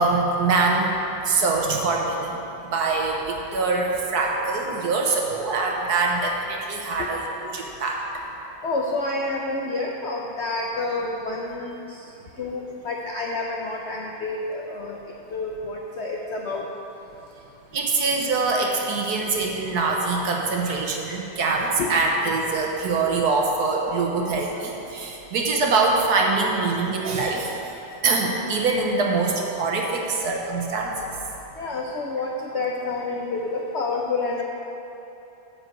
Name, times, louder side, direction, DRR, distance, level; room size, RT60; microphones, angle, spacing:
voice 1, 0.0-8.0 17.7-27.6 28.0-31.1, right 3 dB, 60° right, 0 dB, 1.4 m, -24 dB
voice 2, 8.6-11.8 12.4-15.0 15.3-16.6 21.8-21.9 31.6-34.4, left 3 dB, 65° left, -1 dB, 0.6 m, -28 dB
9.8 x 5.3 x 7.6 m, 2.9 s
omnidirectional pair, 2.1 m